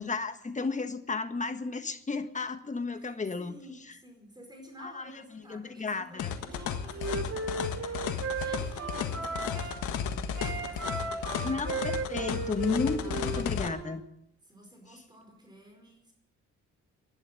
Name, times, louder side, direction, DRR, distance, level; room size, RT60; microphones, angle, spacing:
voice 1, 0.0-3.5 4.8-6.3 11.4-14.0, left 4 dB, 25° left, 1.5 m, -33 dB
voice 2, 2.9-11.6 12.1-12.6 12.9-13.7 14.4-16.1, equal, 15° right, 5.0 m, -52 dB
sound 1, 6.2-13.7, left 8 dB, 80° left, 1.6 m, -34 dB
Wind instrument woodwind instrument, 6.5-9.8 10.3-14.0, right 3 dB, 50° right, 2.9 m, -36 dB
11.5 x 11.5 x 10.0 m
cardioid pair, 90°, 30 cm